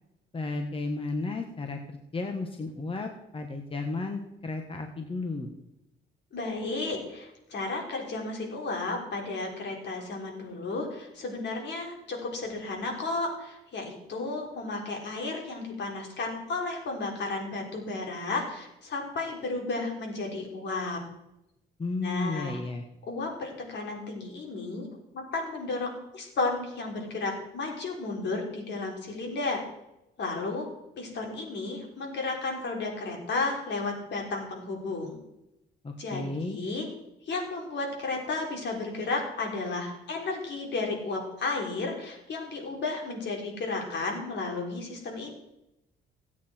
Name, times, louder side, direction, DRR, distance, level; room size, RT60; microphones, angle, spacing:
voice 1, 0.3-5.5 21.8-22.8 35.8-36.6, left 3 dB, 25° left, 4 dB, 1.4 m, -33 dB
voice 2, 6.3-21.0 22.0-22.6 23.1-24.9 25.1-29.6 30.2-30.7 31.0-35.2 36.0-36.9 37.2-45.3, left 3 dB, 60° left, 0 dB, 3.9 m, -33 dB
16.5 x 8.6 x 4.4 m, 0.88 s
cardioid pair, 90°, 20 cm